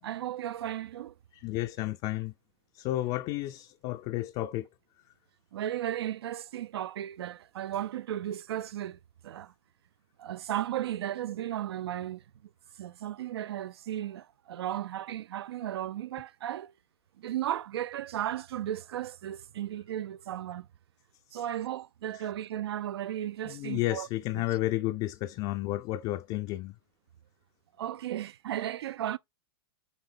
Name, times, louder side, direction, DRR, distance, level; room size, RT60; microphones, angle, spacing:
voice 1, 0.0-1.1 5.5-9.5 10.2-12.2 12.8-16.7 17.2-20.7 21.3-24.1 24.3-24.4 27.8-29.2, right 12 dB, 70° right, 0.7 m, -35 dB
voice 2, 1.3-2.3 2.7-4.7 23.4-26.7, left 16 dB, 40° left, 0.5 m, -32 dB
8.3 x 3.7 x 3.4 m
hypercardioid pair, 110°, 14 cm